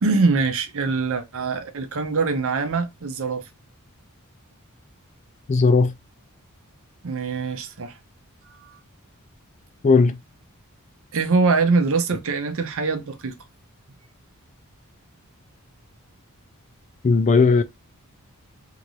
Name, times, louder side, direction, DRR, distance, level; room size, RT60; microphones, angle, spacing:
voice 1, 0.0-3.4 7.0-7.9 8.6-8.8 11.1-13.3, right 4 dB, 65° right, 0.6 m, -23 dB
voice 2, 5.5-5.9 9.8-10.2 17.0-17.6, left 4 dB, 35° left, 0.3 m, -16 dB
2.9 x 2.5 x 3.0 m
head